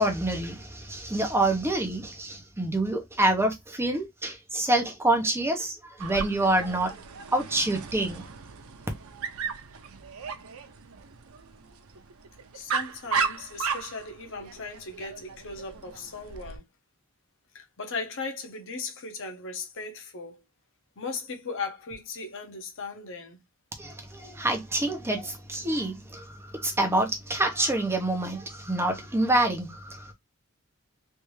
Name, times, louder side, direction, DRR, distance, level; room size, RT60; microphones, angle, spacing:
voice 1, 0.0-6.9 7.3-8.2 23.8-30.1, right 1 dB, 10° right, 0.8 m, -27 dB
Dog, 6.0-16.6, right 5 dB, 70° right, 0.6 m, -35 dB
voice 2, 12.5-16.6 17.5-20.4 21.0-23.4, left 4 dB, 60° left, 0.9 m, -37 dB
3.3 x 2.6 x 3.1 m
head